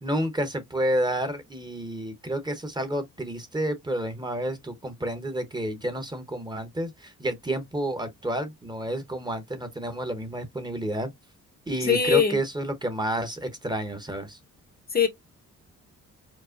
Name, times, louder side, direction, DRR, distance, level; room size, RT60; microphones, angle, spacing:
voice 1, 0.0-11.1 11.7-14.4, right 1 dB, 15° right, 0.9 m, -30 dB
voice 2, 11.8-12.4 14.9-15.1, left 7 dB, 30° left, 0.7 m, -21 dB
4.7 x 2.1 x 2.5 m
cardioid pair, 90°, 30 cm